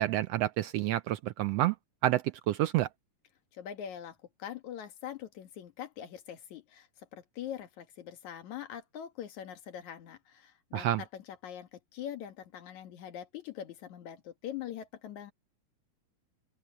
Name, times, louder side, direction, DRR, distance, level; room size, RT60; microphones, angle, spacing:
voice 1, 0.0-1.7 2.0-2.9 10.7-11.0, right 14 dB, 80° right, 1.5 m, -28 dB
voice 2, 3.5-15.3, left 10 dB, 75° left, 3.0 m, -43 dB
open air
omnidirectional pair, 3.4 m